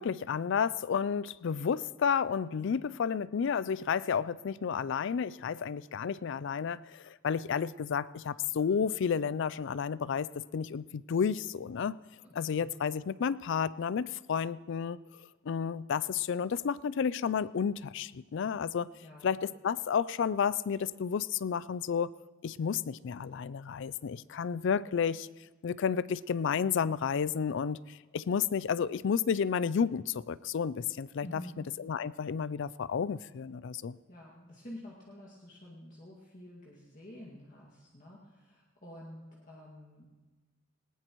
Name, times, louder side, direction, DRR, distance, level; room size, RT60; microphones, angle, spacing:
voice 1, 0.0-12.0 12.3-15.0 15.5-18.9 19.2-22.1 22.4-25.3 25.6-31.3 31.8-34.0, left 7 dB, 60° left, 18 dB, 0.4 m, -31 dB
voice 2, 12.2-12.7 19.0-19.4 31.2-31.6 34.1-40.1, left 1 dB, 40° left, -4 dB, 2.1 m, -49 dB
19.5 x 19.5 x 3.1 m, 1.2 s
head